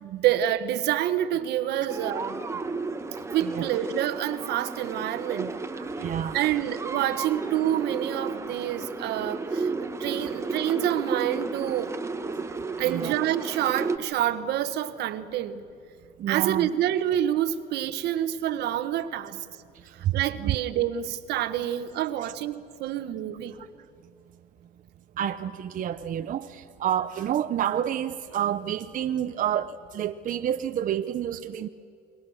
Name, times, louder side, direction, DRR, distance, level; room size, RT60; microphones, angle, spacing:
voice 1, 0.0-2.4 3.3-5.5 6.3-11.9 12.8-15.6 16.3-19.5 20.1-23.6, right 12 dB, 80° right, 1.3 m, -27 dB
sound 1, 1.9-14.0, right 3 dB, 15° right, 1.3 m, -33 dB
voice 2, 5.7-6.5 12.8-13.2 16.2-16.7 20.0-20.6 22.2-22.3 23.5-23.7 25.2-31.7, right 10 dB, 50° right, 0.8 m, -29 dB
29.5 x 22.0 x 6.4 m
cardioid pair, 110°, 17 cm